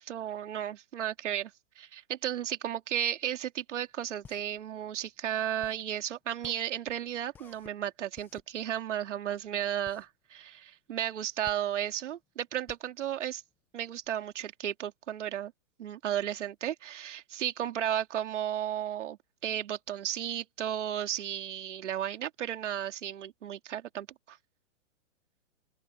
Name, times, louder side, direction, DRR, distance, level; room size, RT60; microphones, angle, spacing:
voice 1, 0.0-1.5 1.8-13.4 13.7-15.5 15.8-19.2 19.4-24.4, right 10 dB, 60° right, 3.0 m, -34 dB
sound 1, 3.8-14.1, left 6 dB, 5° left, 0.8 m, -56 dB
open air
hypercardioid pair, 170°, 41 cm